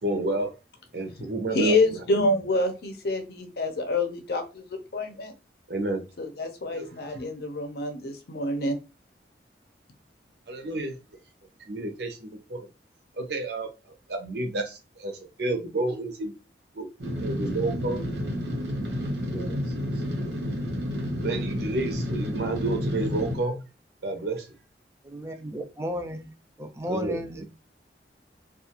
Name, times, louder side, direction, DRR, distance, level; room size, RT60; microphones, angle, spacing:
voice 1, 0.0-0.5 0.9-2.3 5.7-6.0 6.7-6.9 10.5-11.0 11.7-12.7 13.2-13.7 14.1-16.3 16.7-16.9 17.2-18.0 19.3-19.6 21.2-23.6 24.0-24.5 26.9-27.4, right 2 dB, 65° right, 0.7 m, -30 dB
voice 2, 1.5-5.3 6.2-8.8, left 2 dB, 60° left, 0.6 m, -27 dB
sound 1, 17.0-23.4, equal, 85° right, 1.1 m, -30 dB
voice 3, 25.0-26.3 26.6-27.4, equal, 15° right, 0.3 m, -34 dB
2.4 x 2.3 x 2.8 m
head